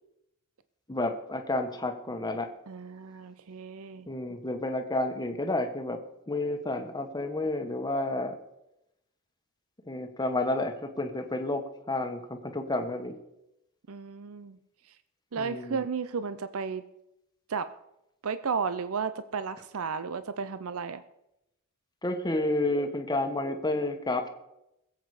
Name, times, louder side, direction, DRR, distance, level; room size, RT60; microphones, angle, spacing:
voice 1, 0.9-2.5 4.1-6.0 6.3-8.4 9.9-13.1 15.4-15.8 22.0-24.3, left 2 dB, 20° left, 6 dB, 1.3 m, -30 dB
voice 2, 2.7-4.1 13.9-14.6 15.3-16.8 17.5-17.7 18.2-21.0, right 5 dB, 65° right, 12 dB, 0.6 m, -33 dB
20.5 x 8.2 x 4.9 m, 0.86 s
head